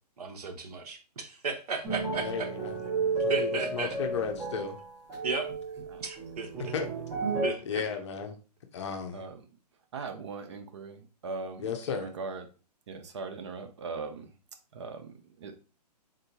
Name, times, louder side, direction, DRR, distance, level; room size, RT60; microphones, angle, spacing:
voice 1, 0.2-2.5 3.3-4.0 5.2-5.5 6.0-6.7 7.4-7.8, right 4 dB, 65° right, 5 dB, 0.8 m, -35 dB
sound 1, 1.8-7.5, right 3 dB, 15° right, 1.1 m, -32 dB
voice 2, 2.2-2.8 3.2-4.8 6.7-6.9 7.7-8.3 8.7-9.2 11.6-12.1, left 6 dB, 45° left, 6 dB, 0.6 m, -34 dB
voice 3, 9.9-12.4 12.9-14.3 14.7-15.6, right 4 dB, 45° right, 7 dB, 0.5 m, -40 dB
3.7 x 2.7 x 2.7 m, 0.34 s
hypercardioid pair, 145°, 21 cm